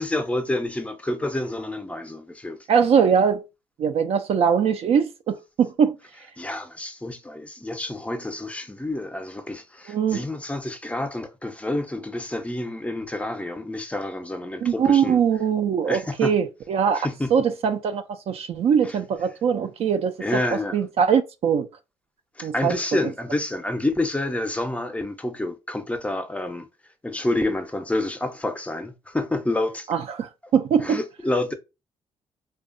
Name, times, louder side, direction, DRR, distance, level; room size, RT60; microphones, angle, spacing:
voice 1, 0.0-2.6 6.4-15.2 15.8-16.3 16.9-17.3 18.8-19.0 20.2-20.8 22.4-26.7 27.0-29.9 30.8-31.5, left 2 dB, 10° left, 0.5 m, -28 dB
voice 2, 2.7-3.4 3.8-6.0 9.9-10.2 14.6-20.1 20.7-21.7 22.4-22.8 29.9-31.0, right 7 dB, 60° right, 0.4 m, -22 dB
2.7 x 2.2 x 2.5 m
cardioid pair, 85°, 11 cm